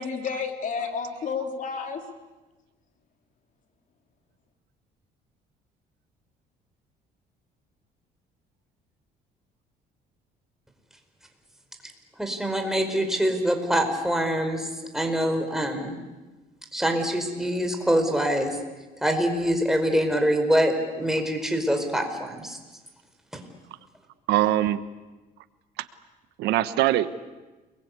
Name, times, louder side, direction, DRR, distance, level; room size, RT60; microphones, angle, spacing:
voice 1, 0.0-2.0, left 5 dB, 50° left, 5 dB, 3.3 m, -31 dB
voice 2, 12.2-16.0 16.7-18.6 19.0-22.6 23.3-23.4, equal, 5° right, 4 dB, 4.9 m, -25 dB
voice 3, 24.3-24.8 25.8-25.9 26.4-27.1, right 14 dB, 85° right, 12 dB, 1.2 m, -22 dB
29.5 x 22.0 x 8.4 m, 1.2 s
cardioid pair, 110°, 17 cm